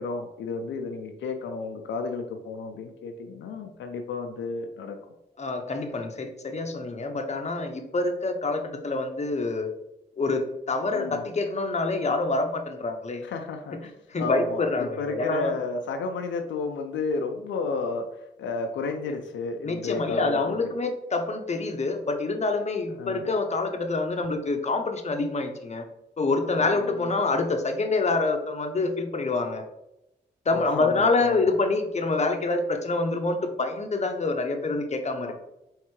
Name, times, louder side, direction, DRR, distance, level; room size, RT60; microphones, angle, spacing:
voice 1, 0.0-5.0 10.9-11.2 13.2-13.9 14.2-18.1 18.4-20.5 23.0-23.3 26.6-26.8 30.5-31.5 35.2-35.3, left 3 dB, 85° left, 5 dB, 0.4 m, -32 dB
voice 2, 5.4-9.7 10.2-13.2 14.1-15.6 19.6-25.8 26.2-29.6 30.5-35.3, left 3 dB, 35° left, 5 dB, 0.7 m, -26 dB
4.3 x 3.2 x 3.1 m, 0.87 s
supercardioid pair, 50°, 19 cm